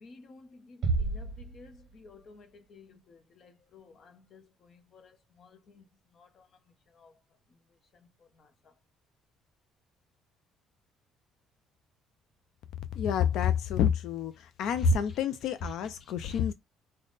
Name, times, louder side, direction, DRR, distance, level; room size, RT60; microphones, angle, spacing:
voice 1, 0.0-0.4 0.7-1.3 1.5-2.5 2.7-3.2 3.7-3.9 4.3-4.4 5.0-5.1, left 4 dB, 40° left, 0.7 m, -52 dB
Bass drum, 0.8-2.3, right 3 dB, 50° right, 0.7 m, -31 dB
voice 2, 12.9-16.5, left 9 dB, 65° left, 0.4 m, -29 dB
3.4 x 2.1 x 3.9 m
cardioid pair, 145°, 0 cm